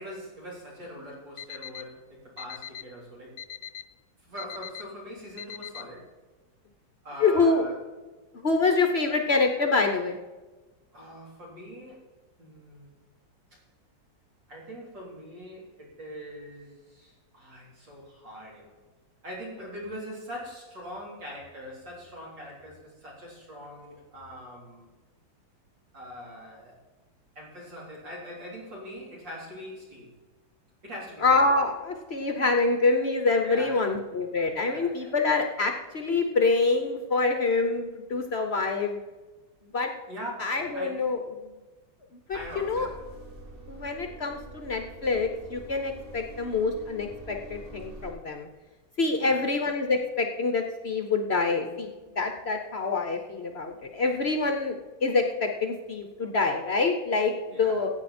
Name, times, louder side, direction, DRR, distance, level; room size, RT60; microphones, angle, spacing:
voice 1, 0.0-3.4 4.2-6.1 7.0-7.8 10.9-12.1 12.4-12.9 14.5-18.8 19.2-24.8 25.9-26.7 27.4-30.1 30.8-31.3 33.4-34.0 34.6-35.1 40.1-41.2 42.3-43.0 49.2-49.4 57.5-57.8, equal, 70° right, -4 dB, 4.5 m, -42 dB
Alarm, 1.4-1.8 2.4-2.8 3.4-3.8 4.4-4.8 5.4-5.8, left 10 dB, 75° left, 1.0 m, -39 dB
voice 2, 7.2-7.7 8.4-10.2 31.2-39.0 39.7-39.9 40.4-41.5 42.3-42.9 43.7-48.5 49.0-51.9 52.2-54.7 55.0-57.3 57.6-57.9, left 3 dB, 45° left, 5 dB, 0.8 m, -26 dB
sound 1, 42.3-48.1, right 1 dB, 20° right, 2.4 m, -46 dB
15.0 x 9.0 x 4.3 m, 1.2 s
omnidirectional pair, 2.0 m